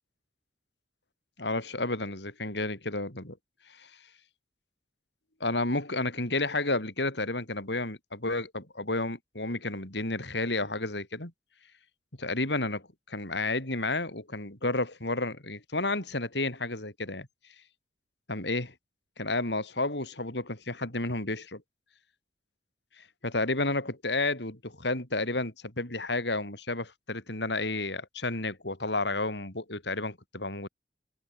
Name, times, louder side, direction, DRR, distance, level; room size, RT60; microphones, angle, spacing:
voice 1, 1.4-3.4 3.8-3.9 5.4-11.3 12.2-17.3 18.3-18.7 19.2-21.6 23.2-30.7, left 2 dB, 70° left, 5.1 m, -31 dB
head